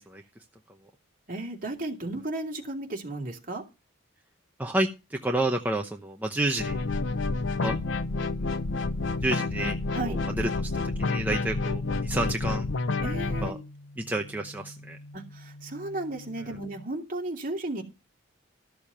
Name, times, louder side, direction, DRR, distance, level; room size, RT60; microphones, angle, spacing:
voice 1, 1.3-3.6 9.9-10.2 13.0-13.6 15.1-17.8, right 2 dB, 40° right, 1 dB, 2.7 m, -34 dB
voice 2, 4.6-6.8 7.6-7.7 9.2-9.8 10.0-10.7 11.0-12.7 13.4-13.6 14.0-15.0, right 1 dB, 10° right, 2 dB, 0.8 m, -29 dB
sound 1, 6.6-13.5, left 3 dB, 65° left, 0.7 m, -29 dB
sound 2, 11.3-16.8, left 1 dB, 45° left, 3.9 m, -48 dB
13.5 x 7.0 x 5.6 m, 0.28 s
head